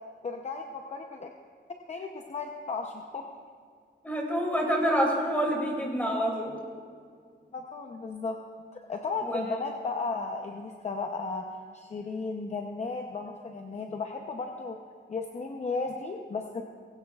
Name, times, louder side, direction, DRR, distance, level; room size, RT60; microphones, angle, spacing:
voice 1, 0.2-1.3 1.9-3.3 7.5-8.4 8.7-11.5 11.7-14.8 15.1-16.6, left 4 dB, 35° left, 2 dB, 0.7 m, -35 dB
voice 2, 4.0-6.6 9.2-9.6, equal, 10° left, -1 dB, 2.5 m, -27 dB
19.5 x 16.5 x 2.4 m, 2.1 s
wide cardioid pair, 160°, 19 cm